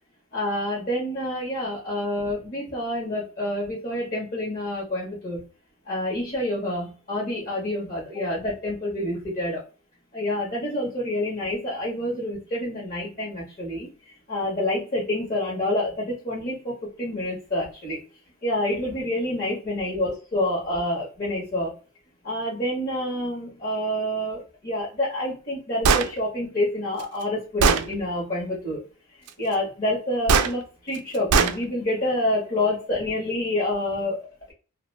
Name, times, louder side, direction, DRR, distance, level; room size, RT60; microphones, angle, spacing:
voice 1, 0.3-5.4 5.8-9.6 10.1-13.9 14.3-18.0 18.4-21.8 22.2-28.8 29.4-34.5, left 1 dB, 40° left, -5 dB, 0.9 m, -28 dB
Gunshot gunfire, 25.8-26.1 27.0-27.1 27.6-27.9 30.3-30.5 31.3-31.6, right 5 dB, 80° right, 0.3 m, -18 dB
2.3 x 2.2 x 3.2 m, 0.35 s
head